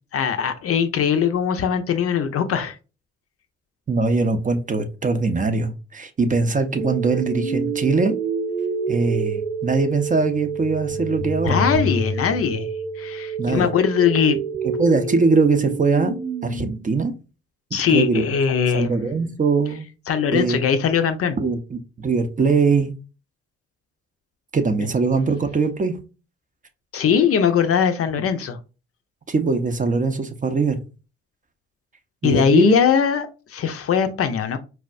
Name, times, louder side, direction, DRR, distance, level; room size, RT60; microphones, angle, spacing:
voice 1, 0.1-2.8 11.4-12.7 13.0-14.4 17.7-19.0 20.1-21.4 26.9-28.6 32.2-34.6, left 7 dB, 50° left, 0.5 m, -20 dB
voice 2, 3.9-8.1 8.9-11.7 13.4-13.7 14.8-16.2 16.4-17.1 17.9-18.2 18.7-19.9 20.3-20.6 21.4-22.9 24.5-26.0 29.3-30.8 32.2-32.8, right 4 dB, 25° right, 0.5 m, -21 dB
sound 1, 6.8-16.8, right 4 dB, 80° right, 0.7 m, -27 dB
4.4 x 2.0 x 2.4 m
hypercardioid pair, 45°, 30 cm